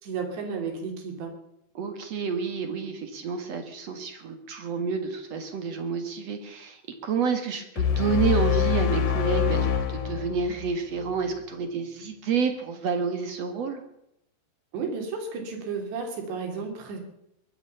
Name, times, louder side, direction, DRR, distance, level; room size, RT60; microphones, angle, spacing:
voice 1, 0.0-1.3 14.7-17.0, right 5 dB, 75° right, 3 dB, 5.1 m, -33 dB
voice 2, 1.7-13.8, right 5 dB, 55° right, 6 dB, 2.1 m, -29 dB
sound 1, 7.8-11.1, left 8 dB, 55° left, 2.5 m, -25 dB
22.5 x 8.5 x 6.9 m, 0.81 s
omnidirectional pair, 5.0 m